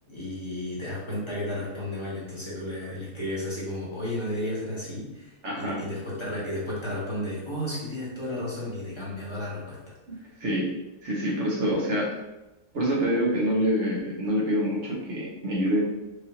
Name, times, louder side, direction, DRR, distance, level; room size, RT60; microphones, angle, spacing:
voice 1, 0.1-9.9, left 1 dB, 25° left, -7 dB, 1.2 m, -33 dB
voice 2, 5.4-5.8 10.1-10.7 11.0-12.1 12.7-15.8, equal, 65° right, -3 dB, 1.4 m, -26 dB
4.7 x 2.6 x 2.9 m, 0.97 s
omnidirectional pair, 1.3 m